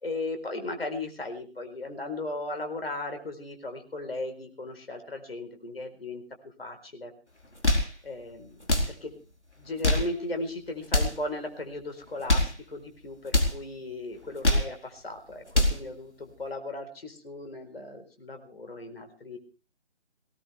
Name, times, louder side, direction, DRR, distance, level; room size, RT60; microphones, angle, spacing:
voice 1, 0.0-7.1 8.0-9.2 9.6-19.4, left 2 dB, 55° left, 6 dB, 4.4 m, -37 dB
sound 1, 7.4-7.9 8.6-8.9 9.6-10.1 10.8-11.2 12.1-12.6 13.3-13.6 14.2-14.7 15.3-15.8, left 1 dB, 80° left, 4.4 m, -24 dB
19.0 x 17.5 x 3.4 m, 0.36 s
figure-of-eight pair, 155°, 35 cm